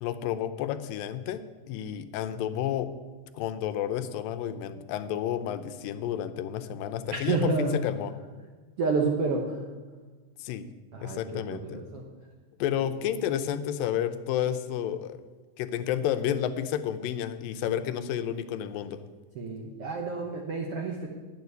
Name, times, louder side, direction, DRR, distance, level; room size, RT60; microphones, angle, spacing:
voice 1, 0.0-2.9 3.3-8.1 10.4-10.7 11.0-11.8 12.6-15.2 15.6-19.0, left 10 dB, 90° left, 10 dB, 2.4 m, -31 dB
voice 2, 7.1-7.9 8.8-9.6 10.9-12.1 12.9-13.0 17.6-17.8 19.3-21.1, right 3 dB, 65° right, 1 dB, 1.4 m, -30 dB
10.5 x 7.1 x 8.1 m, 1.3 s
omnidirectional pair, 3.9 m